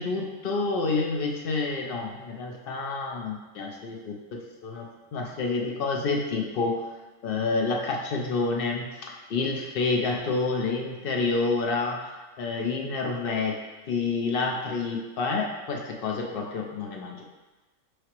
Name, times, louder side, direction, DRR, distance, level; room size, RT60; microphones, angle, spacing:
voice 1, 0.0-6.8 7.2-12.0 12.4-13.6 13.9-17.3, left 3 dB, 65° left, 1 dB, 0.5 m, -28 dB
4.8 x 3.2 x 2.9 m, 1.2 s
omnidirectional pair, 1.4 m